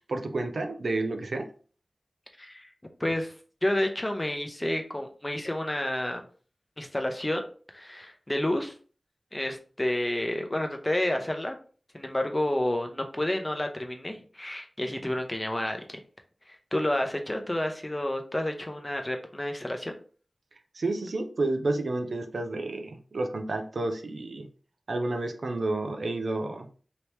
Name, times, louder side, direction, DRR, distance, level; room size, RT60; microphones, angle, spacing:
voice 1, 0.1-1.5 20.7-24.5 24.9-26.7, right 2 dB, 90° right, 5 dB, 0.5 m, -30 dB
voice 2, 2.4-2.7 3.0-3.3 3.6-6.2 6.8-7.5 7.7-8.7 9.3-11.6 11.9-16.0 16.5-20.0, left 1 dB, 25° left, 5 dB, 0.7 m, -30 dB
2.9 x 2.9 x 3.3 m, 0.41 s
wide cardioid pair, 45°, 0 cm